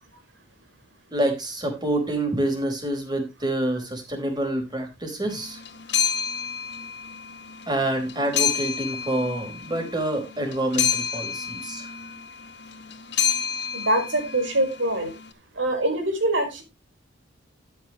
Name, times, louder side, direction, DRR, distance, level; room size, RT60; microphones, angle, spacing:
voice 1, 1.1-5.6 7.7-11.9, right 1 dB, 25° right, 4 dB, 4.3 m, -27 dB
sound 1, 5.3-15.3, left 7 dB, 65° left, 1.8 m, -29 dB
voice 2, 13.7-15.1 15.6-16.6, right 1 dB, 85° right, 5 dB, 4.9 m, -24 dB
13.0 x 9.6 x 3.1 m, 0.25 s
head